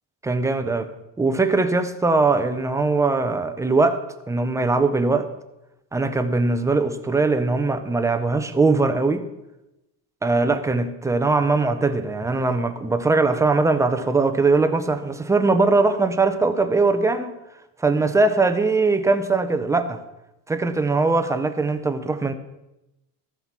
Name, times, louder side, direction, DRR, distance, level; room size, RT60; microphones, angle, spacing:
voice 1, 0.2-0.9 1.2-5.3 5.9-9.3 10.2-17.4 17.8-20.0 20.5-22.3, right 3 dB, 5° right, 9 dB, 0.6 m, -21 dB
14.5 x 7.8 x 6.0 m, 0.92 s
cardioid pair, 160°, 42 cm